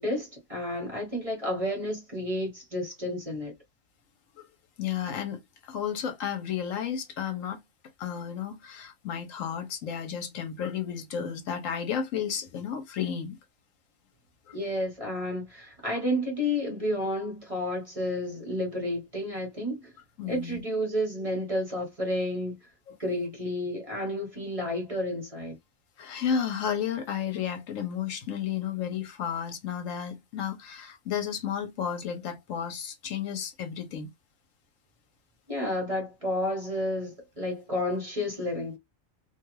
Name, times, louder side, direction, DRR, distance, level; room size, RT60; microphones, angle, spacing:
voice 1, 0.0-3.5 14.5-19.9 20.2-22.6 23.0-25.6 35.5-38.8, left 1 dB, 25° right, 1.2 m, -31 dB
voice 2, 4.8-7.6 8.0-13.4 14.5-14.6 20.2-20.6 22.9-23.0 26.0-34.1, left 8 dB, 75° left, 1.1 m, -32 dB
2.6 x 2.3 x 3.0 m
omnidirectional pair, 1.4 m